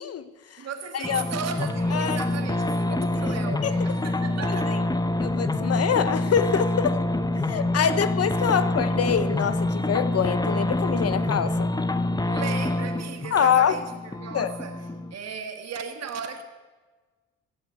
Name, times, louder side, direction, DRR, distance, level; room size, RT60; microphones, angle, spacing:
voice 1, 0.0-0.7 0.9-1.3 1.9-2.2 2.9-3.1 3.6-3.7 4.7-4.8 5.2-7.1 7.5-11.7 13.3-13.7 14.3-14.5, left 7 dB, 55° left, 1.0 m, -25 dB
voice 2, 0.6-4.8 8.5-8.6 12.2-16.4, right 6 dB, 55° right, 1.7 m, -36 dB
sound 1, 1.0-15.1, left 1 dB, 15° left, 0.9 m, -26 dB
15.5 x 7.4 x 9.4 m
cardioid pair, 90°, 30 cm